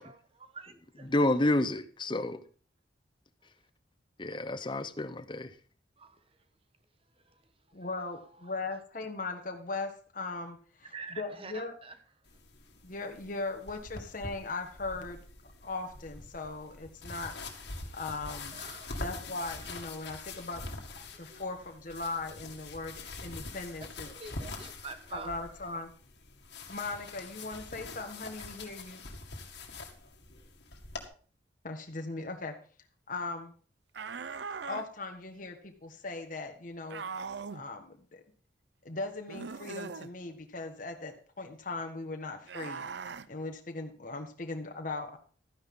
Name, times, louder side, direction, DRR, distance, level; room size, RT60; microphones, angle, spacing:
voice 1, 0.0-1.1 6.0-6.2 10.9-11.9 18.5-18.9 19.6-19.7 21.1-21.4 23.8-25.3, right 4 dB, 30° right, 1.2 m, -46 dB
voice 2, 1.1-2.4 4.5-5.4, left 1 dB, 25° left, 0.7 m, -28 dB
voice 3, 7.7-11.7 12.8-15.2 15.6-17.3 17.9-18.6 19.0-20.6 21.2-24.1 25.1-25.9 26.7-29.0 31.6-32.5 33.1-33.5 34.7-37.1 37.5-38.2 38.8-45.2, left 3 dB, 45° left, 1.4 m, -39 dB
sound 1, 12.2-31.1, left 3 dB, 65° left, 2.0 m, -44 dB
sound 2, 33.9-34.9 36.9-37.6 39.3-40.1 42.5-43.3, right 5 dB, 65° right, 0.5 m, -40 dB
13.0 x 9.9 x 3.7 m
head